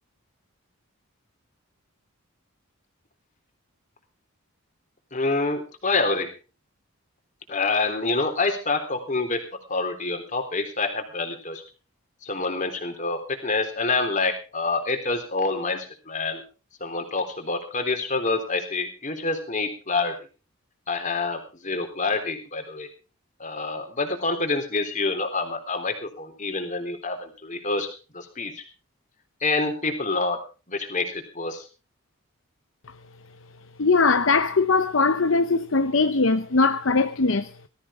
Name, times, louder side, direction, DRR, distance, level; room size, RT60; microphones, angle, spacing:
voice 1, 5.1-6.3 7.5-9.4 9.7-11.6 12.2-16.4 16.8-20.1 20.9-22.9 23.4-27.9 28.1-28.6 29.4-30.4 30.7-31.6, left 3 dB, 35° left, 3.6 m, -27 dB
voice 2, 33.8-37.5, left 4 dB, 60° left, 0.8 m, -21 dB
19.0 x 14.0 x 3.7 m
head